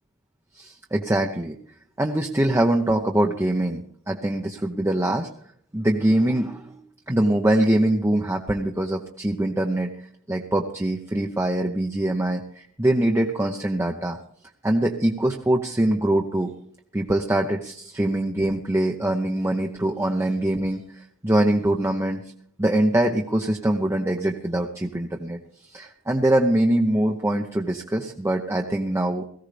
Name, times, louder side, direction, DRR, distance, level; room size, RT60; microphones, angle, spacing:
voice 1, 0.6-1.6 2.0-5.3 5.7-6.8 7.1-9.9 10.3-14.2 14.6-16.5 16.9-20.8 21.2-22.2 22.6-25.4 25.7-29.2, right 1 dB, 15° right, 2 dB, 0.7 m, -23 dB
18.0 x 15.0 x 3.4 m, 0.63 s
head